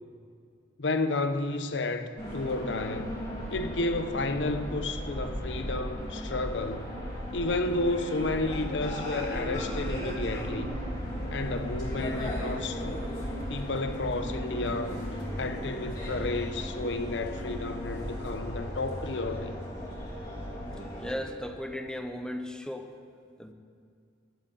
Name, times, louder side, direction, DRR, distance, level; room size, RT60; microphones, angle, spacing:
voice 1, 0.8-3.2 3.5-7.0 7.3-10.8 11.3-13.1 13.5-14.9 15.4-19.5, left 2 dB, 75° left, 0.7 m, -31 dB
sound 1, 2.2-21.1, equal, 25° left, 3.6 m, -35 dB
voice 2, 20.9-22.9 23.4-23.5, equal, 5° left, 0.6 m, -36 dB
12.0 x 7.9 x 9.1 m
head